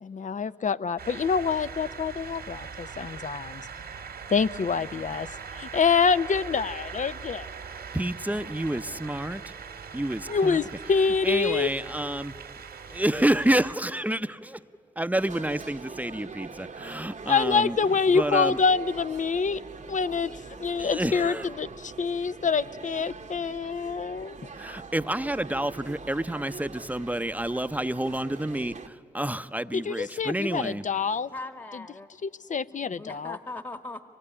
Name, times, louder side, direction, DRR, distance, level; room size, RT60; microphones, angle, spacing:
voice 1, 0.0-3.7 4.3-5.3 5.5-7.5 10.3-11.7 17.3-19.6 19.9-20.3 20.6-24.4 29.7-31.3 32.2-33.4, left 5 dB, 50° left, 15 dB, 0.7 m, -26 dB
sound 1, 1.0-13.7, right 6 dB, 80° right, 2.0 m, -41 dB
voice 2, 7.9-9.4 9.9-10.6 11.2-12.3 12.9-14.6 15.0-17.8 18.1-18.6 20.8-21.5 24.5-30.8, right 1 dB, 10° right, 12 dB, 0.8 m, -29 dB
sound 2, 15.2-28.9, right 4 dB, 50° right, 1.1 m, -43 dB
voice 3, 31.3-32.1 32.7-34.0, left 2 dB, 25° left, 9 dB, 1.5 m, -39 dB
24.5 x 20.0 x 9.9 m, 2.4 s
supercardioid pair, 40°, 16 cm